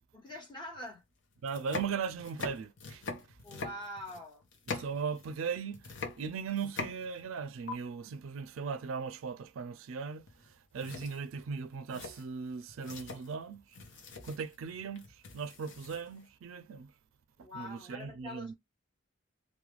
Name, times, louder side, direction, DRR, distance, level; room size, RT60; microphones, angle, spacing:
voice 1, 0.1-1.0 3.4-4.5 17.4-18.5, left 1 dB, 25° left, 1.1 m, -44 dB
sound 1, 0.7-0.8 1.4-5.5 5.7-7.4 7.7-7.8 10.3-10.5 10.8-16.2, left 4 dB, 65° left, 0.7 m, -43 dB
voice 2, 1.4-3.0 4.7-10.2 10.7-13.6 14.2-16.9 17.5-18.5, right 6 dB, 80° right, 0.4 m, -38 dB
2.4 x 2.1 x 3.0 m
head